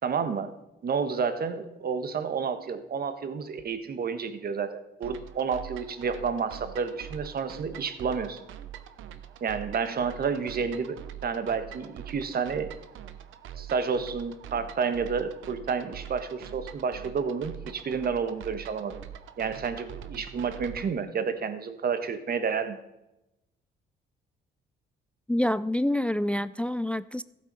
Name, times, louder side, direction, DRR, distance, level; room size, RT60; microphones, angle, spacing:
voice 1, 0.0-0.5 0.8-8.4 9.4-12.7 13.6-19.0 19.4-22.8, right 6 dB, 50° right, 10 dB, 1.4 m, -30 dB
sound 1, 5.0-20.9, right 10 dB, 85° right, 0.9 m, -44 dB
voice 2, 25.3-27.2, left 1 dB, 5° left, 16 dB, 0.3 m, -27 dB
14.5 x 8.2 x 5.5 m, 0.91 s
cardioid pair, 90°, 20 cm